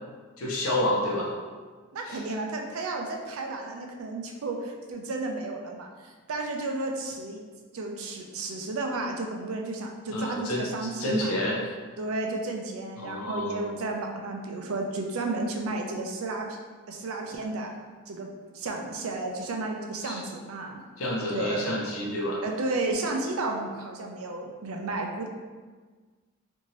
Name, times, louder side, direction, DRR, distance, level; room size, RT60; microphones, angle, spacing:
voice 1, 0.4-1.3 2.1-2.2 10.1-10.7 11.0-11.6 13.0-13.7 20.0-20.2 21.0-22.4, left 1 dB, 75° left, -3 dB, 0.7 m, -29 dB
voice 2, 1.9-7.4 7.7-11.3 12.0-16.6 16.9-17.7 18.1-20.8 21.3-21.8 22.4-25.3, right 2 dB, 75° right, 2 dB, 0.4 m, -32 dB
2.7 x 2.6 x 3.0 m, 1.5 s
head